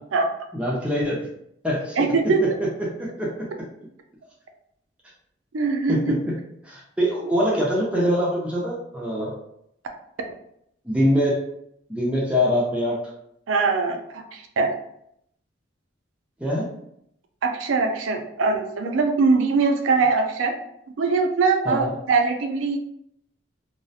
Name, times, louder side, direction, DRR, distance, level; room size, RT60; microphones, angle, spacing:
voice 1, 0.5-1.3 1.6-3.5 5.9-6.2 6.6-9.3 10.8-11.4 11.9-13.1 16.4-16.7 21.6-21.9, equal, 5° right, -5 dB, 0.4 m, -24 dB
voice 2, 2.0-2.4 5.5-6.2 13.5-14.7 17.4-20.6 21.0-22.8, right 4 dB, 90° right, 4 dB, 0.4 m, -22 dB
2.4 x 2.0 x 2.6 m, 0.75 s
head